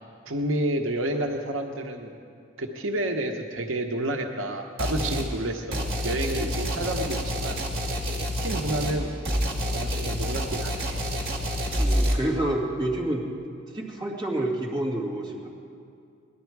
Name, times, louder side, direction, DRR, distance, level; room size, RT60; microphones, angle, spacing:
voice 1, 0.3-2.1 2.6-7.6 8.4-9.1 9.7-11.0, right 1 dB, 85° right, 4 dB, 0.9 m, -30 dB
sound 1, 4.8-5.3 5.7-12.2, equal, 55° right, 1.9 m, -28 dB
voice 2, 11.8-13.3 13.7-15.5, right 1 dB, 20° right, -3 dB, 2.1 m, -28 dB
19.0 x 11.0 x 4.6 m, 2.4 s
head